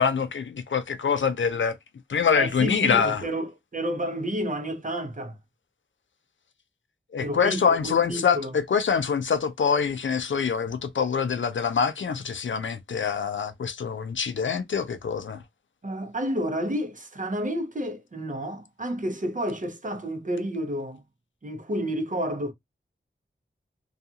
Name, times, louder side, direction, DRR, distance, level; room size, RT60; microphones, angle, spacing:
voice 1, 0.0-1.8 2.1-3.2 7.1-15.4, left 6 dB, 65° left, 0.5 m, -25 dB
voice 2, 2.4-5.4 7.2-8.5 15.8-21.0 21.4-22.5, equal, 40° right, 0.7 m, -30 dB
2.4 x 2.3 x 2.7 m
wide cardioid pair, 60°, 21 cm